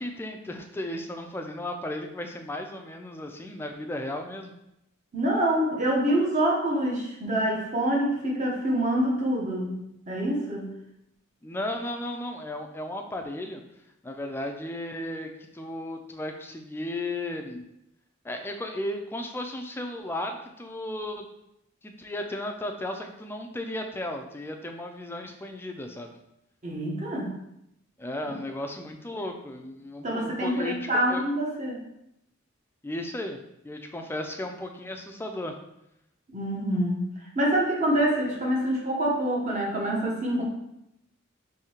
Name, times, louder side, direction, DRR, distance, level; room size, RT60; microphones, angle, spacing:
voice 1, 0.0-4.5 11.4-13.6 14.0-17.6 18.2-21.3 21.8-26.1 28.0-31.2 32.8-33.4 33.6-35.5, left 1 dB, 10° left, 4 dB, 0.3 m, -35 dB
voice 2, 5.1-9.8 10.1-10.7 26.6-27.4 30.0-31.8 36.3-37.0 37.3-40.4, right 1 dB, 35° right, -2 dB, 0.9 m, -26 dB
5.0 x 2.7 x 2.8 m, 0.83 s
head